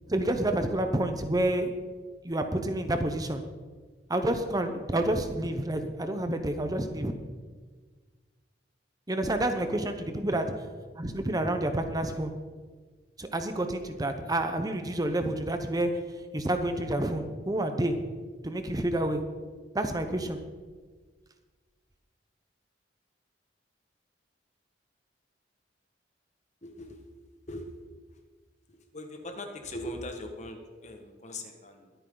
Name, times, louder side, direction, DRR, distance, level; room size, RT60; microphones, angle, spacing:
voice 1, 0.1-1.7 2.2-3.4 4.1-7.1 9.1-10.5 11.0-12.3 13.2-15.9 16.3-17.9 18.4-19.2 19.7-20.4, right 1 dB, 20° right, 7 dB, 0.8 m, -29 dB
voice 2, 26.6-27.1 27.5-27.7 28.7-31.9, left 1 dB, 40° left, 4 dB, 1.5 m, -40 dB
22.0 x 9.1 x 3.9 m, 1.5 s
head